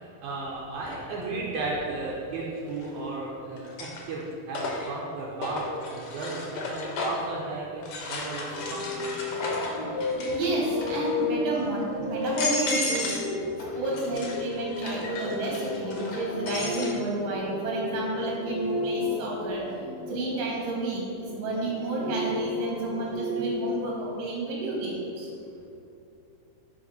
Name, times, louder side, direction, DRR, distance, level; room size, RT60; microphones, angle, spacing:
voice 1, 0.0-9.1 10.3-10.4, right 2 dB, 80° right, -4 dB, 2.0 m, -34 dB
sound 1, 0.9-1.0 2.7-3.2 3.6-7.3 7.8-10.4 10.7-11.2 11.8-11.9 12.2-13.3 13.6-16.9, left 2 dB, 80° left, 1.2 m, -34 dB
sound 2, 8.5-20.4 21.5-23.7, left 3 dB, 65° left, 1.0 m, -33 dB
voice 2, 10.3-13.1 13.8-19.6 20.1-25.3, right 2 dB, 60° right, -3 dB, 2.0 m, -30 dB
5.0 x 4.8 x 4.0 m, 2.6 s
omnidirectional pair, 3.6 m